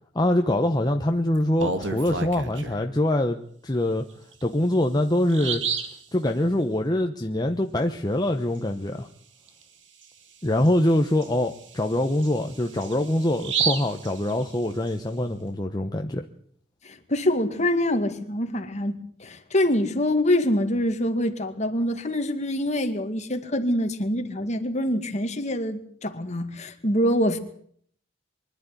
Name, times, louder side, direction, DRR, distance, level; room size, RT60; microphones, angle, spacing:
voice 1, 0.1-3.4 3.6-4.0 4.4-5.6 6.1-9.1 10.4-16.2, left 1 dB, 20° left, 1.0 m, -24 dB
Bird vocalization bird call bird song, 1.4-2.8 4.3-4.4 4.8-4.9 5.3-6.0 9.5-9.6 10.0-10.1 10.7-14.9, right 6 dB, 85° right, 2.5 m, -31 dB
voice 2, 16.8-27.4, left 1 dB, 40° left, 2.2 m, -25 dB
24.5 x 11.5 x 9.7 m
head